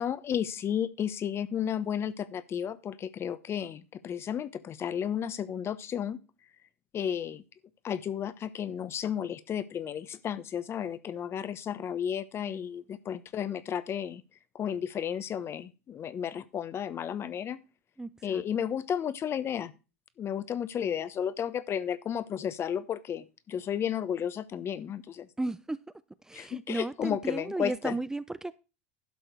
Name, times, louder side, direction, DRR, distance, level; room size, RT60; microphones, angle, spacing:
voice 1, 0.0-6.2 6.9-7.4 7.8-14.2 14.5-17.6 18.2-19.7 20.2-25.3 26.3-28.0, left 9 dB, 35° left, 1.0 m, -33 dB
voice 2, 18.0-18.4 25.4-25.8 26.3-28.5, right 2 dB, 10° right, 0.5 m, -34 dB
11.5 x 6.5 x 4.6 m
hypercardioid pair, 90°, 7 cm